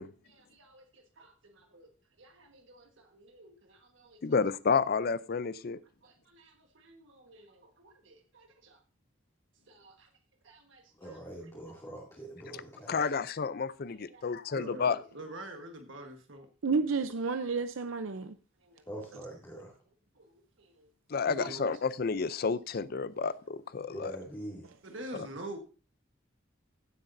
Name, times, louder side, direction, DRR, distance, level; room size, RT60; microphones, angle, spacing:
voice 1, 0.2-1.9 2.2-4.4 5.4-5.6 6.0-8.8 9.7-10.1 10.4-11.2 11.5-11.7 12.2-12.6 13.9-16.5 18.6-18.8 20.1-20.3 20.6-20.9 21.3-21.7 24.8-25.6, right 1 dB, 70° right, 1.4 m, -48 dB
voice 2, 4.2-5.8 12.9-15.0 21.1-24.1, left 5 dB, 50° left, 0.5 m, -30 dB
voice 3, 11.0-13.1 18.9-19.7 23.9-24.7, right 1 dB, 15° left, 2.5 m, -44 dB
voice 4, 16.6-18.3 21.2-21.5, right 4 dB, 85° right, 0.6 m, -31 dB
16.0 x 8.0 x 2.6 m
head